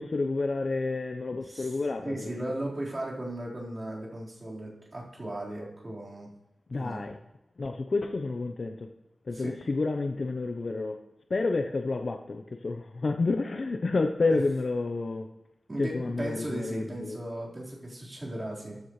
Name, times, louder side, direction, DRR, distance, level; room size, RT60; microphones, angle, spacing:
voice 1, 0.0-2.4 6.7-7.2 7.6-8.9 9.3-11.0 11.3-15.3 15.8-17.2, left 3 dB, 60° left, 4 dB, 0.8 m, -30 dB
voice 2, 2.0-6.3 6.8-7.1 9.3-9.6 14.3-14.4 15.7-18.8, right 1 dB, 35° right, -6 dB, 4.2 m, -37 dB
14.0 x 11.5 x 3.2 m, 0.95 s
wide cardioid pair, 70°, 0 cm